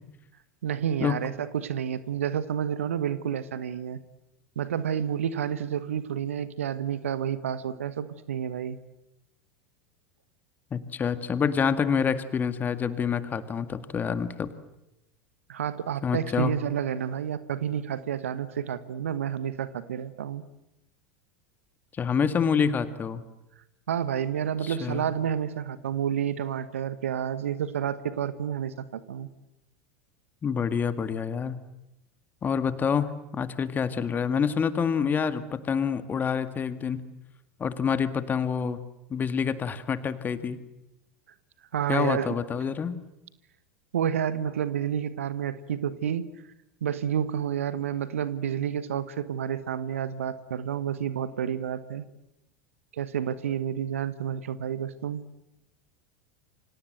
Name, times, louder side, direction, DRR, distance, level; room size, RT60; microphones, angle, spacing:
voice 1, 0.6-4.0 4.5-8.8 15.5-20.4 23.9-29.3 41.7-42.3 43.9-46.3 46.8-52.1 52.9-55.2, right 9 dB, 70° right, 14 dB, 1.3 m, -30 dB
voice 2, 10.7-14.5 16.0-16.5 22.0-23.2 24.6-25.1 30.4-31.6 32.4-37.0 37.6-38.8 39.1-40.6 41.9-43.0, left 6 dB, 25° left, 11 dB, 1.9 m, -27 dB
28.5 x 25.5 x 7.8 m, 0.89 s
figure-of-eight pair, 80°, 8 cm